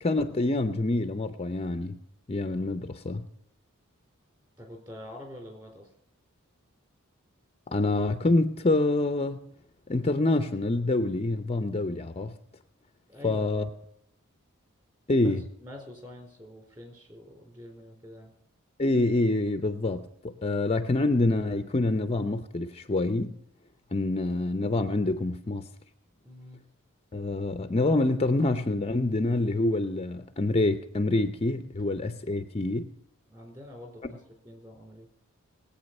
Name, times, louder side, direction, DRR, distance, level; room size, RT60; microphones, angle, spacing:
voice 1, 0.0-2.0 2.3-3.3 7.7-9.4 9.9-12.3 13.2-13.7 15.1-15.4 18.8-23.4 23.9-25.7 27.1-32.9, left 2 dB, 30° left, 0.6 m, -26 dB
voice 2, 4.6-5.9 13.1-13.4 15.1-18.3 26.2-26.6 33.3-35.1, left 1 dB, 20° right, 4.2 m, -46 dB
19.5 x 8.5 x 5.3 m
head